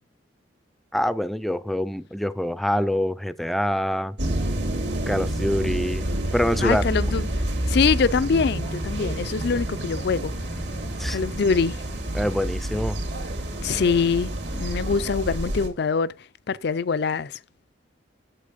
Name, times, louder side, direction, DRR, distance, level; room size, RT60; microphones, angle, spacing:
voice 1, 0.9-4.2 5.1-6.1 6.3-6.9 11.0-11.2 12.1-13.0, equal, ahead, 0.4 m, -25 dB
sound 1, 4.2-15.7, right 1 dB, 70° right, 2.8 m, -28 dB
voice 2, 6.6-7.3 7.7-10.3 11.1-11.8 13.6-16.1 16.5-17.3, left 5 dB, 60° left, 0.4 m, -24 dB
8.5 x 7.4 x 5.2 m
head